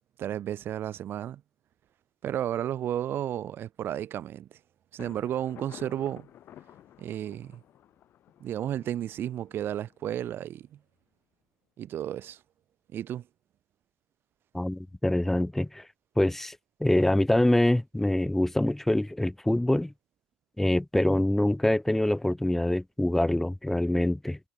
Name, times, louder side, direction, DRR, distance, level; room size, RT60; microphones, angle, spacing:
voice 1, 0.2-1.4 2.2-4.5 4.9-6.3 7.0-7.6 8.4-10.8 11.8-12.4 12.9-13.2, right 11 dB, 50° right, 1.2 m, -33 dB
Thunder, 5.0-10.6, left 11 dB, 55° left, 6.0 m, -52 dB
voice 2, 14.5-15.9 16.2-19.9 20.6-24.4, left 1 dB, 5° left, 1.7 m, -25 dB
supercardioid pair, 80°, 5 cm